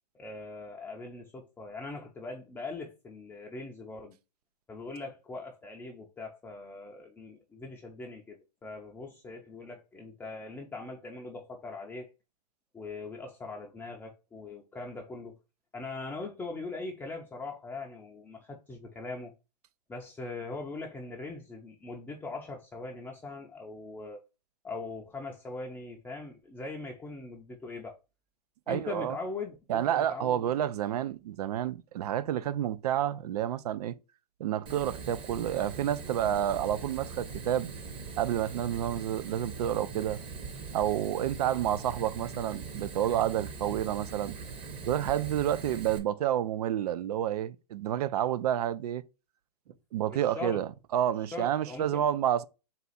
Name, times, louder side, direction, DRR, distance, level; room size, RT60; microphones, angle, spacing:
voice 1, 0.1-4.2 4.7-12.1 12.7-15.3 15.7-19.3 19.9-24.2 24.6-27.9 28.7-30.5 49.7-49.8 50.1-50.7 51.3-52.1, left 3 dB, 10° left, 0.5 m, -41 dB
voice 2, 28.7-29.2 29.7-34.0 34.4-37.7 38.2-40.2 40.7-44.4 44.9-49.0 49.9-52.4, right 11 dB, 70° right, 0.4 m, -29 dB
Fire, 34.7-46.0, right 4 dB, 25° right, 0.8 m, -41 dB
4.1 x 2.4 x 4.0 m
hypercardioid pair, 135°, 20 cm